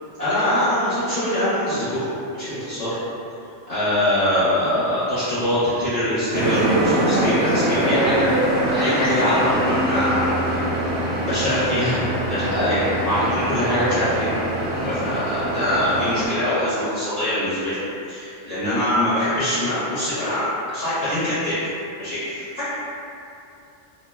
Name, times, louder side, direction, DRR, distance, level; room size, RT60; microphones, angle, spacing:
voice 1, 0.2-2.0 2.3-2.9 3.7-8.3 8.7-10.6 11.2-12.0 12.3-14.3 14.8-17.8 18.1-21.6 22.0-22.7, left 1 dB, 30° left, -17 dB, 1.2 m, -23 dB
sound 1, 6.3-16.3, right 1 dB, 80° right, 1.0 m, -23 dB
2.9 x 2.5 x 2.3 m, 2.7 s
omnidirectional pair, 1.3 m